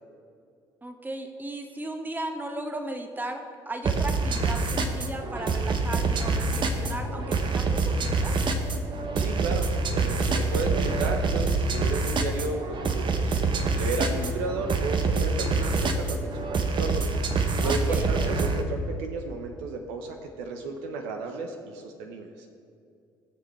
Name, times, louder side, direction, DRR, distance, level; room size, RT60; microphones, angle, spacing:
voice 1, 0.8-8.3 14.0-14.4 17.6-18.1, right 1 dB, 15° right, 5 dB, 1.4 m, -36 dB
sound 1, 3.9-18.6, right 3 dB, 40° right, 1.1 m, -26 dB
voice 2, 9.1-13.2 13.7-17.0 17.6-22.5, right 3 dB, 70° right, 4 dB, 0.9 m, -33 dB
19.5 x 6.9 x 3.2 m, 2.4 s
hypercardioid pair, 55°, 12 cm